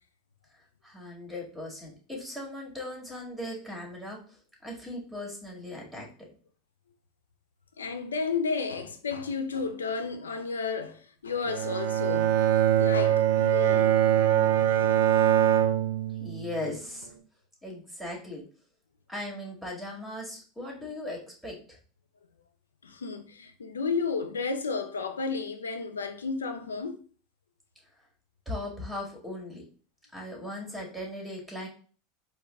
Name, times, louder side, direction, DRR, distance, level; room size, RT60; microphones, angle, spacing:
voice 1, 0.8-4.2 4.6-6.1 16.2-17.1 17.6-18.4 19.1-21.6 28.5-29.6 30.1-31.7, left 1 dB, ahead, 1.9 m, -38 dB
voice 2, 7.8-12.4 12.8-14.0 22.8-27.0, left 5 dB, 85° left, 0.5 m, -32 dB
Bowed string instrument, 11.5-16.7, right 10 dB, 70° right, 0.6 m, -23 dB
4.5 x 2.2 x 3.3 m
hypercardioid pair, 85°, 0 cm